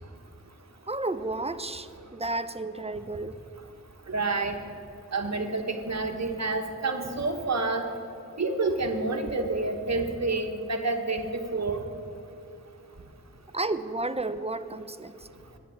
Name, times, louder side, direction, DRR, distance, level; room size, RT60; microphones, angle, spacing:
voice 1, 0.9-3.4 13.5-15.1, right 2 dB, 20° right, 12 dB, 0.6 m, -32 dB
voice 2, 4.1-4.6 5.1-7.9 8.4-11.8, right 3 dB, 55° right, 4 dB, 1.3 m, -28 dB
10.5 x 9.6 x 8.4 m, 2.9 s
wide cardioid pair, 55°, 31 cm